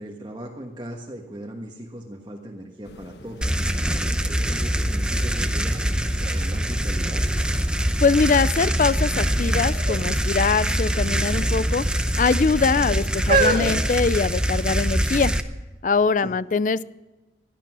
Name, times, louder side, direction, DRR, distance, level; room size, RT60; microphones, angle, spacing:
voice 1, 0.0-3.4 4.0-7.2 16.2-16.3, right 1 dB, 25° right, 0 dB, 1.3 m, -38 dB
sound 1, 2.8-13.7, left 2 dB, 75° left, 1.1 m, -45 dB
sound 2, 3.4-15.4, equal, 5° right, 0.7 m, -24 dB
sound 3, 5.7-5.8 6.2-7.8 8.4-8.9 9.7-10.1 10.3-10.5 11.4-12.0 12.7-14.8 15.5-15.6, right 3 dB, 45° right, 1.7 m, -27 dB
voice 2, 8.0-11.9 12.2-15.3 15.8-16.8, left 4 dB, 45° left, 18 dB, 0.4 m, -22 dB
17.0 x 12.0 x 6.1 m, 1.1 s
head